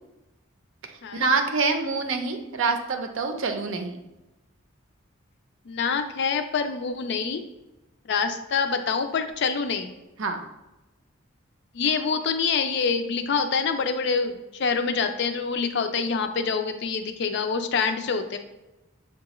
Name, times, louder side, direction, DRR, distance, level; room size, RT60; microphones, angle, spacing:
voice 1, 1.1-4.0 10.2-10.4, right 4 dB, 70° right, 5 dB, 0.5 m, -26 dB
voice 2, 5.7-7.4 8.0-9.9 11.7-18.4, left 5 dB, 55° left, 8 dB, 0.4 m, -26 dB
6.4 x 2.3 x 3.0 m, 1.0 s
head